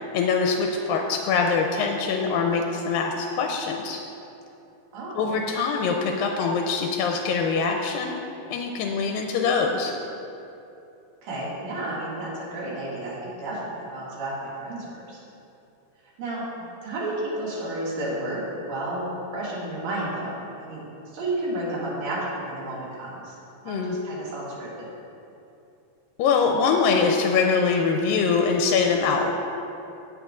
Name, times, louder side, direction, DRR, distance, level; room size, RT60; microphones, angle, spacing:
voice 1, 0.1-4.0 5.2-8.1 8.5-10.0 23.7-24.0 26.2-29.3, left 5 dB, 85° left, 3 dB, 2.3 m, -23 dB
voice 2, 4.9-5.3 11.2-15.2 16.2-16.4 16.8-18.4 18.7-23.3 23.6-24.9, right 1 dB, 55° right, -7 dB, 3.2 m, -32 dB
17.5 x 7.5 x 2.5 m, 2.8 s
omnidirectional pair, 4.1 m